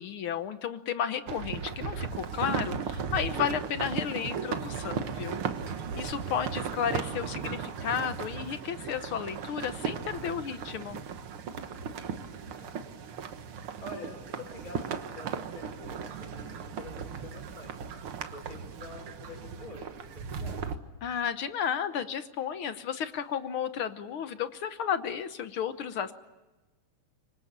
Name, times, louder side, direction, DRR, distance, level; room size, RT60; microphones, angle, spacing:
voice 1, 0.0-5.4 5.7-11.0 21.0-26.1, left 8 dB, 65° left, 11 dB, 1.3 m, -33 dB
sound 1, 1.3-20.8, right 6 dB, 55° right, 1.8 m, -36 dB
voice 2, 11.7-13.1 13.8-17.7 18.2-20.7, left 2 dB, 25° left, 0 dB, 6.6 m, -47 dB
27.0 x 24.5 x 7.3 m, 1.1 s
omnidirectional pair, 3.5 m